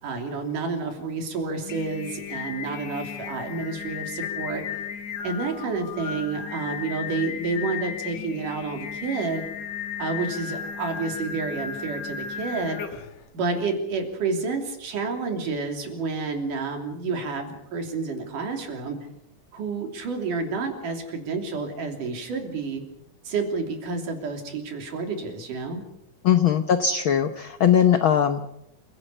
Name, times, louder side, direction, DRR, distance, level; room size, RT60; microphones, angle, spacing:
voice 1, 0.0-4.6 5.2-9.4 10.0-12.8 13.3-19.0 19.5-22.8 23.2-25.8, right 4 dB, 75° right, 4 dB, 4.6 m, -29 dB
Singing, 1.5-13.2, left 7 dB, 60° left, 2.6 m, -35 dB
voice 2, 26.2-28.5, left 8 dB, 90° left, 9 dB, 1.1 m, -20 dB
28.5 x 16.5 x 6.8 m, 0.81 s
omnidirectional pair, 3.7 m